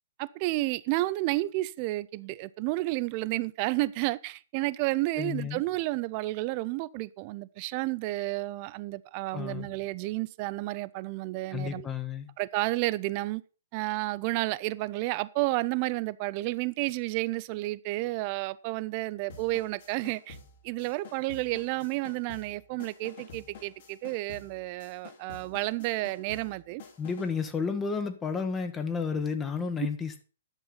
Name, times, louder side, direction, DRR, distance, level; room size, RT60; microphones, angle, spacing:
voice 1, 0.2-11.9 12.4-13.4 13.7-20.4 20.6-26.8, right 19 dB, 35° right, 0.6 m, -31 dB
voice 2, 5.2-5.6 9.3-9.7 11.5-12.3 27.0-30.2, left 5 dB, 15° left, 1.2 m, -32 dB
sound 1, 19.3-27.4, left 4 dB, 55° left, 3.4 m, -50 dB
11.0 x 7.2 x 5.6 m
figure-of-eight pair, 120°, 0 cm